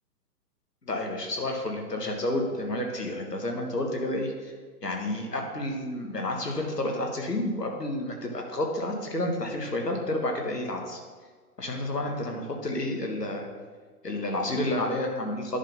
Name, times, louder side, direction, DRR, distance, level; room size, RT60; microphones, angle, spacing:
voice 1, 0.9-4.5 4.8-11.0 11.6-13.5 14.0-15.6, left 1 dB, 90° left, 2 dB, 1.7 m, -30 dB
10.5 x 4.0 x 5.3 m, 1.5 s
figure-of-eight pair, 120°, 47 cm